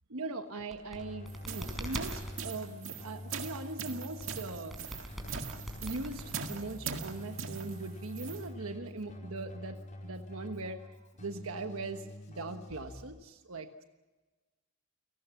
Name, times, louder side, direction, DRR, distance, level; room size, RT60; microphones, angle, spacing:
voice 1, 0.1-4.8 5.8-13.8, right 2 dB, 85° right, 7 dB, 1.3 m, -40 dB
sound 1, 0.6-2.4 4.2-6.8, equal, ahead, 4.9 m, -42 dB
Keyboard (musical), 0.9-13.0, left 1 dB, 35° left, 4.7 m, -46 dB
sound 2, 1.3-8.5, right 6 dB, 65° right, 2.0 m, -42 dB
29.5 x 19.0 x 7.1 m, 1.3 s
head